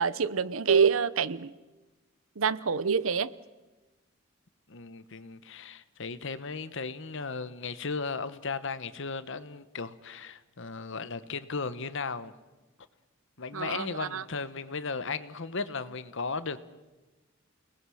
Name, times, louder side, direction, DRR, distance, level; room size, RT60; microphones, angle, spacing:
voice 1, 0.0-1.5 2.4-3.3 13.5-14.2, right 6 dB, 85° right, 18 dB, 0.8 m, -26 dB
voice 2, 4.7-12.3 13.4-16.6, left 4 dB, 65° left, 14 dB, 1.2 m, -36 dB
29.0 x 19.5 x 6.4 m, 1.1 s
head